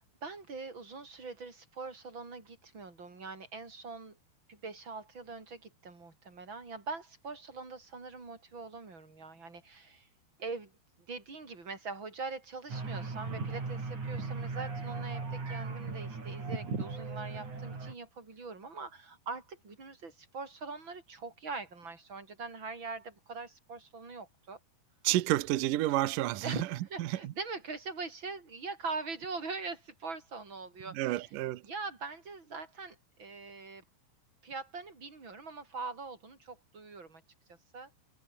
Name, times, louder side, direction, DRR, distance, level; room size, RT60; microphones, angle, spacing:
voice 1, 0.0-4.2 4.5-10.1 10.4-10.7 11.1-24.6 26.3-31.3 31.6-33.8 34.4-37.2 37.5-37.9, right 4 dB, 25° right, 6.2 m, -42 dB
sound 1, 12.7-17.9, right 4 dB, 45° right, 7.8 m, -37 dB
voice 2, 25.0-26.6 27.0-27.2 31.0-31.6, right 16 dB, 70° right, 2.2 m, -29 dB
omnidirectional pair, 4.8 m